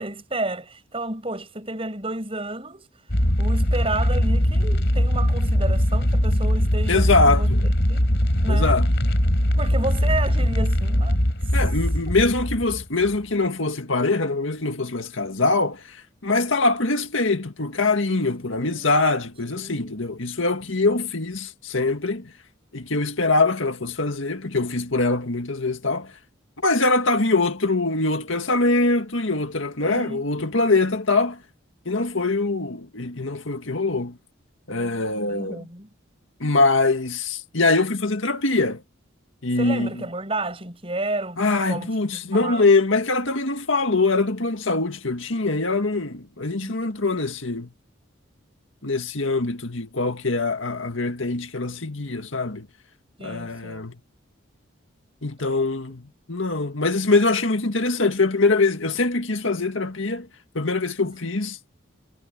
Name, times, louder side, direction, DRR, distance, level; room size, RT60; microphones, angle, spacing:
voice 1, 0.0-2.9 3.4-8.1 8.4-8.8 9.6-11.2 12.1-12.2 18.1-18.9 19.5-19.9 29.8-30.8 35.3-35.9 39.6-41.4 41.6-42.7 46.5-46.8 53.2-53.9, right 2 dB, 25° right, 6.3 m, -32 dB
sound 1, 3.1-13.2, equal, 55° left, 4.8 m, -21 dB
voice 2, 6.9-7.6 8.5-8.9 11.5-22.3 22.7-26.1 26.6-31.4 31.9-34.2 34.7-35.7 36.4-38.8 39.4-40.0 41.4-47.7 48.8-52.7 53.2-54.0 55.2-60.3 60.5-61.6, left 3 dB, 75° left, 1.9 m, -23 dB
head